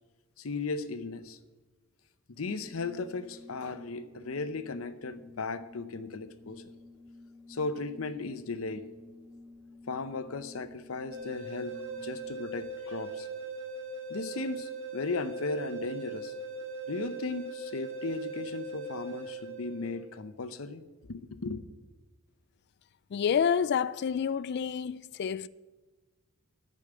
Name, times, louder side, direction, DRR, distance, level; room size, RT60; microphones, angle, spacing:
voice 1, 0.4-1.4 2.4-6.6 7.5-8.9 9.9-13.3 14.1-16.3 16.9-21.6, left 3 dB, 75° left, 0.7 m, -36 dB
Organ, 2.4-12.6, left 2 dB, 15° right, 2.0 m, -52 dB
sound 1, 11.1-20.1, right 3 dB, 60° right, 1.8 m, -40 dB
voice 2, 23.1-25.5, left 7 dB, 50° left, 0.3 m, -28 dB
12.0 x 6.5 x 7.6 m
head